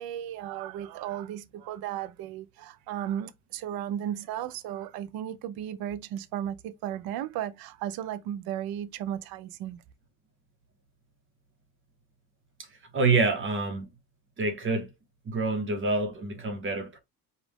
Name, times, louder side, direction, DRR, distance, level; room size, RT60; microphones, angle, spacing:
voice 1, 0.0-9.8, right 11 dB, 70° right, 0.6 m, -35 dB
voice 2, 12.6-13.9 14.4-14.9 15.2-17.0, right 3 dB, 35° right, 1.0 m, -27 dB
5.1 x 2.5 x 3.5 m
cardioid pair, 150°, 37 cm